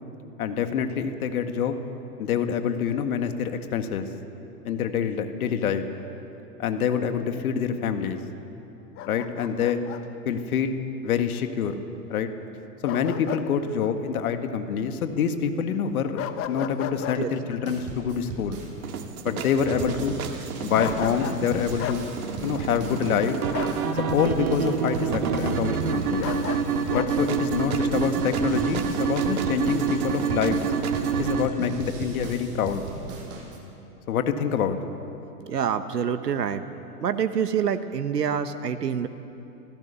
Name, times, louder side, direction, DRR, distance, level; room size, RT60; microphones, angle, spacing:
voice 1, 0.4-1.8 2.2-4.1 4.6-5.8 6.6-8.2 9.0-9.8 10.3-10.8 11.0-11.8 12.1-12.3 12.8-16.2 16.5-18.6 19.2-20.2 20.6-22.0 22.4-23.4 23.9-26.3 26.9-30.6 31.2-32.8 34.1-34.8, left 7 dB, 65° left, 7 dB, 1.9 m, -26 dB
Bark, 9.0-10.0 12.9-13.5 13.8-14.0 16.2-17.2 20.8-21.4 21.8-22.0 23.5-23.8 26.2-27.1, left 11 dB, 30° left, 1.2 m, -33 dB
sound 1, 17.6-19.0 19.4-33.6, right 3 dB, 30° right, 6.5 m, -37 dB
sound 2, 18.8-31.5, right 6 dB, 65° right, 2.1 m, -28 dB
voice 2, 35.4-36.6 37.0-39.1, right 7 dB, 85° right, 10 dB, 1.2 m, -26 dB
26.0 x 16.5 x 7.0 m, 2.9 s
hypercardioid pair, 115°, 46 cm